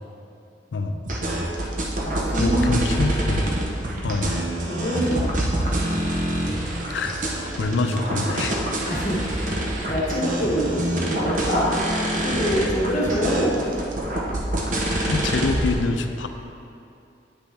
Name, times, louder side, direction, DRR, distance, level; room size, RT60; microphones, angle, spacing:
voice 1, 0.7-1.0 2.4-3.5 4.0-4.3 6.9-8.6 15.0-16.3, left 3 dB, 85° left, 7 dB, 0.5 m, -25 dB
sound 1, 1.1-15.7, right 1 dB, 45° right, 0.8 m, -26 dB
voice 2, 2.0-3.1 4.6-5.3 5.6-5.9 8.8-9.6 9.9-11.7 12.1-13.7, equal, 40° left, -5 dB, 1.1 m, -25 dB
8.8 x 5.4 x 3.4 m, 2.6 s
head